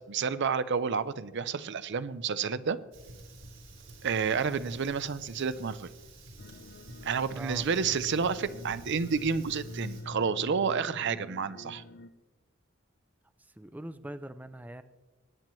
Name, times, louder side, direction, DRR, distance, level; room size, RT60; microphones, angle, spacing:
voice 1, 0.0-2.8 4.0-5.9 7.0-11.8, right 6 dB, 60° right, 14 dB, 0.5 m, -30 dB
Fire, 2.9-10.0, right 2 dB, 75° right, 4.0 m, -50 dB
sound 1, 6.4-12.1, left 1 dB, 55° left, 0.6 m, -45 dB
voice 2, 13.4-14.8, right 1 dB, 10° right, 11 dB, 0.4 m, -42 dB
21.0 x 9.0 x 3.1 m, 1.2 s
head